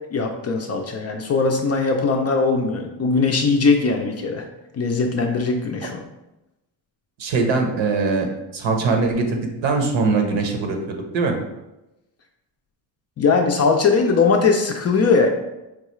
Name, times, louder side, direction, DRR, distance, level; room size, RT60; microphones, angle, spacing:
voice 1, 0.1-4.4 4.8-6.0 13.2-15.3, left 4 dB, 35° left, 3 dB, 0.4 m, -20 dB
voice 2, 7.2-10.8 11.1-11.4, right 4 dB, 70° right, 3 dB, 0.9 m, -21 dB
4.6 x 2.3 x 3.0 m, 0.96 s
cardioid pair, 105°, 47 cm